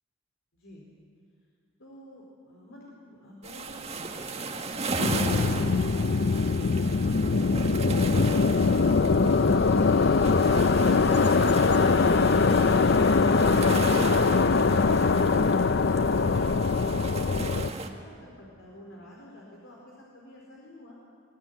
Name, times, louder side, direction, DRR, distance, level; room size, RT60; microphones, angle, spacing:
voice 1, 0.5-0.8 1.8-17.1 17.4-21.0, left 1 dB, 75° left, -3 dB, 4.4 m, -49 dB
sound 1, 3.4-17.9, right 3 dB, 30° right, 1.7 m, -36 dB
sound 2, 5.0-17.7, left 4 dB, 55° left, 0.5 m, -22 dB
23.0 x 21.5 x 9.5 m, 2.2 s
head